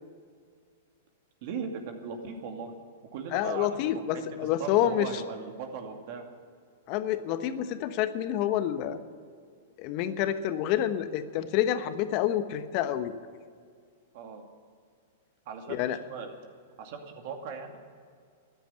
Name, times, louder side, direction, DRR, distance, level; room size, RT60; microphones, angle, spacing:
voice 1, 1.4-2.7 3.1-3.7 4.1-4.2 4.6-6.2 14.1-14.4 15.5-16.3 16.8-17.8, right 5 dB, 55° right, 4 dB, 2.4 m, -38 dB
voice 2, 3.3-5.2 6.9-9.0 9.8-13.2 15.7-16.0, left 11 dB, 45° left, 10 dB, 1.1 m, -28 dB
13.5 x 10.0 x 9.6 m, 2.2 s
hypercardioid pair, 120°, 0 cm